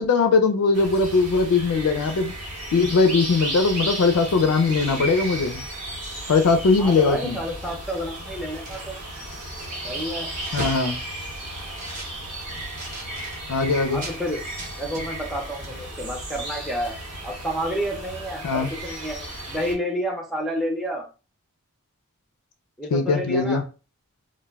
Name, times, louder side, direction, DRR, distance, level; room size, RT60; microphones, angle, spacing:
voice 1, 0.0-2.3 2.7-5.6 6.3-7.4 10.5-11.0 13.5-14.0 18.4-18.7 22.9-23.6, left 4 dB, 80° left, 8 dB, 0.4 m, -20 dB
sound 1, 0.7-19.7, right 1 dB, 90° right, 1.1 m, -34 dB
sound 2, 3.1-5.0 5.4-5.6 5.8-7.1 7.4-14.2 14.6-15.4 15.6-15.8, right 2 dB, 35° right, 0.7 m, -41 dB
voice 2, 6.8-9.0 9.8-10.3 13.9-14.4 14.8-17.0 17.2-19.2 19.5-21.1 22.8-23.6, equal, ahead, 2 dB, 0.5 m, -29 dB
2.2 x 2.1 x 3.3 m, 0.33 s
head